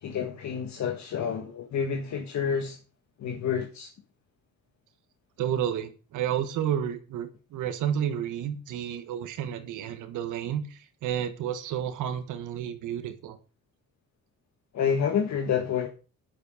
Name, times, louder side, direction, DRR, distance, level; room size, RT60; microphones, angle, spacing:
voice 1, 0.0-2.8 3.2-3.9 14.7-15.9, left 7 dB, 65° left, 1.6 m, -28 dB
voice 2, 5.4-13.4, right 9 dB, 85° right, 1.5 m, -31 dB
10.0 x 7.2 x 5.0 m
cardioid pair, 90°, 30 cm